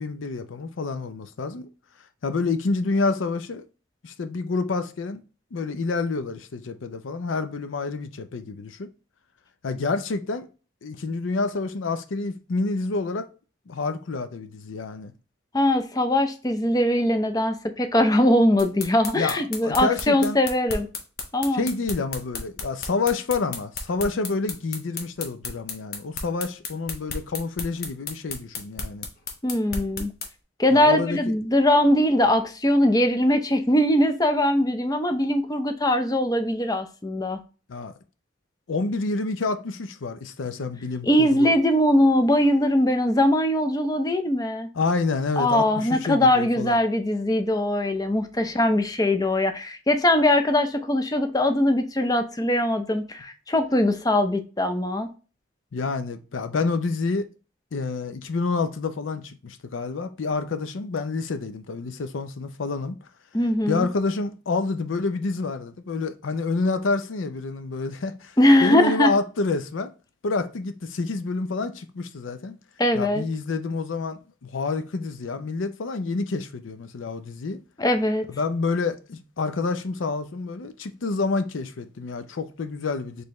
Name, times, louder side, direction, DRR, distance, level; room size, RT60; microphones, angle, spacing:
voice 1, 0.0-1.7 2.2-3.7 4.0-5.2 5.5-8.9 9.6-10.5 10.8-13.3 13.7-15.1 19.1-20.4 21.5-29.1 30.7-31.2 37.7-37.9 38.7-41.5 44.7-46.8 55.7-57.3 57.7-63.0 63.7-69.9 70.2-72.6 72.9-77.6 78.3-83.2, left 3 dB, 85° left, 0.5 m, -28 dB
voice 2, 15.5-20.9 21.3-21.6 29.4-30.1 30.6-37.4 41.0-44.7 45.4-55.1 63.3-63.9 68.4-69.1 72.8-73.2 77.8-78.2, left 1 dB, 20° left, 0.5 m, -21 dB
sound 1, 18.6-30.3, left 4 dB, 50° left, 0.9 m, -33 dB
4.4 x 3.3 x 3.0 m
head